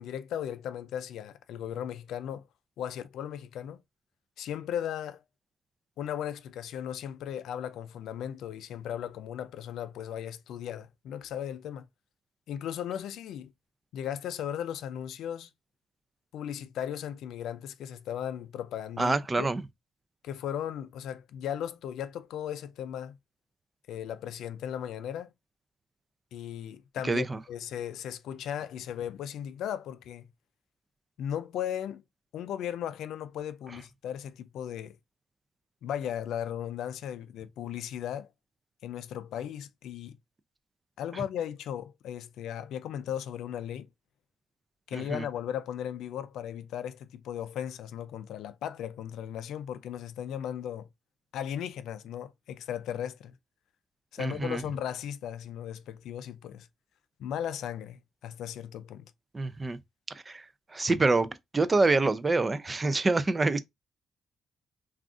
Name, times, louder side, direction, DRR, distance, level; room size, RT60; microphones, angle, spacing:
voice 1, 0.0-2.5 2.8-3.8 4.4-5.2 6.0-11.9 12.5-13.5 13.9-15.5 16.3-19.5 20.2-23.2 23.9-25.3 26.3-30.3 31.2-32.0 32.3-35.0 35.8-38.3 38.8-40.2 41.0-43.9 44.9-50.9 51.3-53.4 54.1-56.7 57.2-59.1, left 10 dB, 85° left, 0.3 m, -36 dB
voice 2, 19.0-19.6 27.0-27.4 44.9-45.2 54.2-54.6 59.3-59.8 60.3-60.4 60.7-63.6, right 3 dB, 20° right, 0.3 m, -26 dB
2.4 x 2.4 x 3.6 m
cardioid pair, 125°, 0 cm